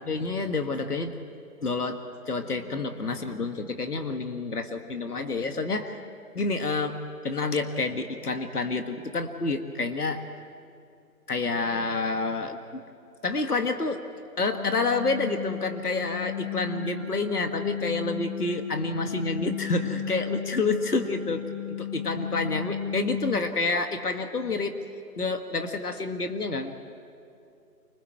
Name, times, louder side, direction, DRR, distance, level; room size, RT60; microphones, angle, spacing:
voice 1, 0.1-1.2 1.6-2.0 2.3-6.1 6.3-10.2 11.3-12.8 13.2-14.0 14.4-24.8 25.2-26.7, left 3 dB, 70° left, 7 dB, 1.7 m, -29 dB
sound 1, 14.5-23.4, left 9 dB, 20° left, 1.3 m, -34 dB
30.0 x 21.0 x 4.7 m, 2.6 s
figure-of-eight pair, 175°, 48 cm